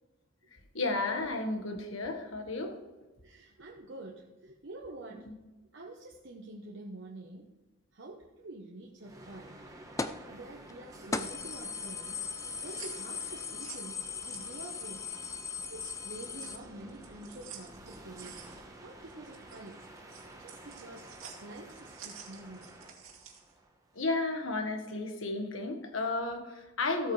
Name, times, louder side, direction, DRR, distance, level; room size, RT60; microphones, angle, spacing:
voice 1, 0.7-2.8 5.3-5.4 23.9-27.1, left 3 dB, 70° left, 4 dB, 1.5 m, -33 dB
voice 2, 3.2-5.3 5.7-7.5 7.9-9.6 10.3-12.2 12.6-15.0 15.7-18.4 18.8-19.8 20.4-21.1 21.4-22.7, right 2 dB, 60° right, -1 dB, 1.0 m, -47 dB
sound 1, 9.0-24.1, right 1 dB, 15° right, 1.1 m, -52 dB
sound 2, 10.0-10.3 10.7-10.8 11.1-16.6, left 4 dB, 15° left, 0.4 m, -38 dB
sound 3, 11.1-15.1 15.4-23.5, right 7 dB, 85° right, 2.3 m, -51 dB
15.5 x 8.4 x 3.3 m, 1.2 s
head